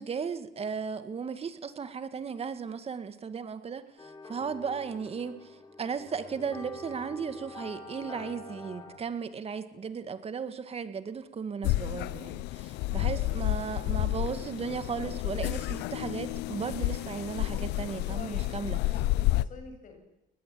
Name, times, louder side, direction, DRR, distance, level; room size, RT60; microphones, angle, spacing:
voice 1, 0.0-18.8, right 6 dB, 35° right, 10 dB, 2.2 m, -36 dB
sound 1, 4.0-9.0, left 2 dB, 25° left, 4.8 m, -46 dB
sound 2, 11.6-19.4, left 17 dB, 90° left, 0.7 m, -30 dB
voice 2, 18.1-20.1, left 4 dB, 50° left, 5 dB, 7.6 m, -47 dB
21.5 x 19.5 x 8.8 m, 0.88 s
cardioid pair, 110°, 17 cm